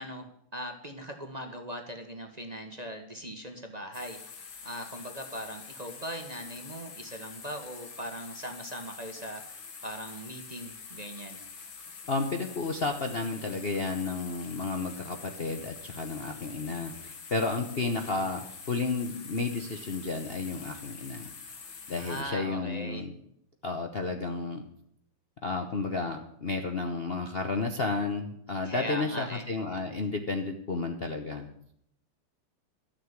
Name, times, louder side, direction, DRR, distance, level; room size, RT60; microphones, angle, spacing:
voice 1, 0.0-11.4 22.0-23.1 28.6-29.4, equal, 25° right, 4 dB, 1.2 m, -40 dB
sound 1, 3.9-22.2, left 5 dB, 90° left, 2.5 m, -46 dB
voice 2, 12.1-21.3 21.9-23.1 23.6-24.6 25.4-31.5, left 3 dB, 40° left, 4 dB, 0.9 m, -32 dB
13.0 x 6.8 x 9.5 m, 0.72 s
omnidirectional pair, 2.1 m